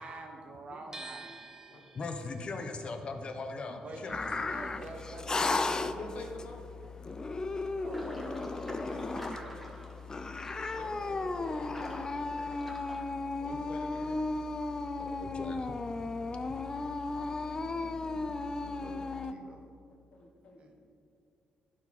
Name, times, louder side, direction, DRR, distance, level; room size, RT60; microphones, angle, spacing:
voice 1, 0.0-1.4 3.8-5.6 7.7-8.0 8.6-9.6 17.1-19.6 20.6-20.7, right 2 dB, 55° right, 2 dB, 1.3 m, -47 dB
sound 1, 0.9-7.0 7.2-8.5, right 3 dB, 20° right, 0.9 m, -52 dB
voice 2, 1.9-4.6 15.0-15.7, left 3 dB, 45° left, 5 dB, 0.8 m, -40 dB
sound 2, 4.1-19.3, left 3 dB, 30° left, 0.4 m, -35 dB
voice 3, 6.0-6.6 8.8-9.0 9.6-9.7 10.7-12.6 13.4-14.2 18.4-18.5 20.1-20.8, left 2 dB, 60° left, 2 dB, 1.2 m, -46 dB
sound 3, 7.9-13.0, equal, 5° left, 1.6 m, -49 dB
11.5 x 4.7 x 4.2 m, 2.4 s
cardioid pair, 90°, 2 cm